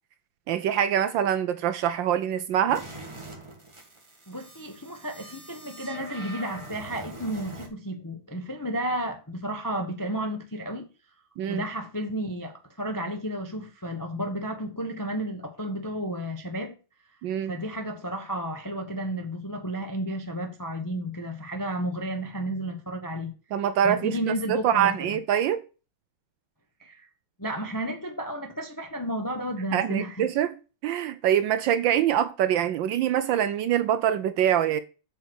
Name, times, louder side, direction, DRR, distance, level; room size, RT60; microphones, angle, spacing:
voice 1, 0.5-2.8 11.4-11.6 17.2-17.5 23.5-24.2 24.5-25.6 29.7-30.6 30.8-34.8, right 10 dB, 75° right, 1.2 m, -24 dB
sound 1, 2.7-7.7, right 2 dB, 15° right, 1.4 m, -43 dB
voice 2, 4.3-10.9 11.5-16.7 17.5-23.3 23.8-25.2 26.8-27.1 27.4-30.3, right 1 dB, 25° left, 0.4 m, -32 dB
8.1 x 4.7 x 6.4 m
omnidirectional pair, 2.4 m